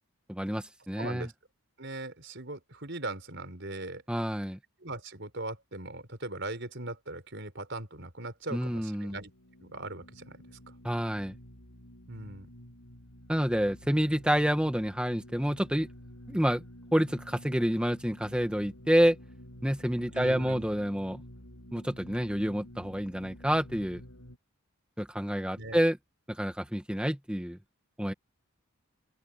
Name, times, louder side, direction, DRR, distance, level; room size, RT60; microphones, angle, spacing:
voice 1, 0.3-1.3 4.1-4.6 8.5-9.2 10.8-11.4 13.3-15.9 16.3-16.6 16.9-19.2 19.6-21.2 21.7-24.0 25.0-26.0 26.3-27.6 28.0-28.1, equal, 5° right, 1.9 m, -28 dB
voice 2, 1.0-1.3 1.8-4.0 4.8-9.3 9.6-10.4 12.1-12.5 20.1-20.7 25.6-25.8, right 2 dB, 55° right, 4.8 m, -39 dB
sound 1, 9.1-24.4, equal, 75° left, 7.9 m, -50 dB
head